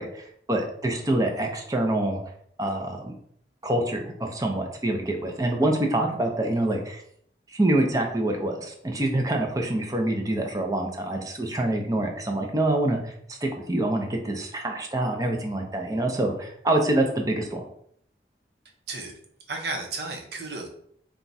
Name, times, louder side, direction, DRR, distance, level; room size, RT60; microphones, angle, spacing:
voice 1, 0.0-2.2 2.6-3.1 3.6-7.0 7.5-17.6, right 1 dB, 20° right, 2 dB, 0.6 m, -26 dB
voice 2, 19.5-20.7, right 3 dB, 65° right, 2 dB, 0.9 m, -33 dB
4.5 x 2.4 x 4.0 m, 0.66 s
head